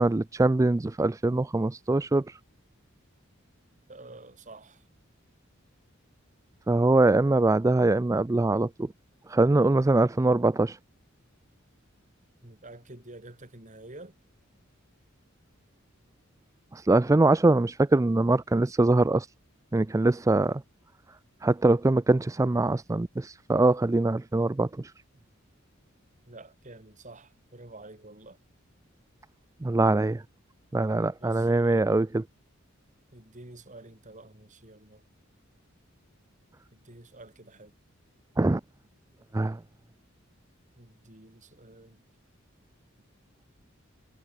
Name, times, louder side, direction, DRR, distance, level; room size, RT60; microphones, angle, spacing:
voice 1, 0.0-2.4 6.7-8.9 9.3-10.8 16.7-19.3 19.7-20.6 21.4-24.9 29.6-30.2 30.7-32.2 38.4-38.6 39.3-39.6, right 2 dB, 15° right, 0.4 m, -23 dB
voice 2, 3.9-4.8 12.4-14.1 26.3-28.4 31.2-32.0 33.1-35.0 36.7-37.7 40.8-42.0, right 2 dB, 40° right, 4.2 m, -49 dB
head